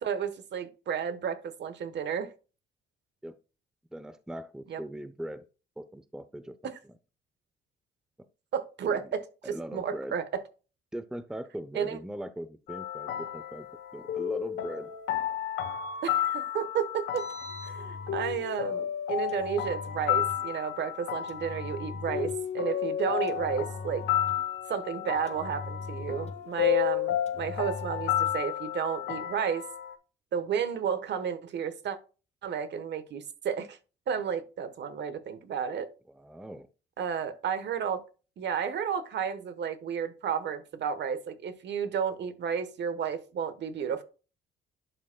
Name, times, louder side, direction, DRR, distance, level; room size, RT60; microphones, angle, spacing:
voice 1, 0.0-2.3 4.7-4.8 8.5-9.3 9.7-10.4 11.7-12.0 16.0-17.3 17.6-24.0 24.7-29.6 30.3-32.0 32.4-33.8 34.1-35.9 37.0-38.0 38.4-44.0, right 7 dB, 65° right, 1.1 m, -32 dB
voice 2, 3.9-5.5 5.8-6.9 8.8-9.1 9.4-10.2 10.9-13.7 13.9-14.9 36.1-36.7, right 1 dB, 5° right, 0.5 m, -40 dB
sound 1, 12.7-29.9, left 11 dB, 75° left, 1.0 m, -32 dB
Engine, 17.0-18.5 19.3-20.5 21.3-22.6 23.3-24.6 25.3-26.6 27.3-28.5, left 3 dB, 35° left, 0.9 m, -41 dB
11.0 x 5.1 x 2.2 m
cardioid pair, 90°, 20 cm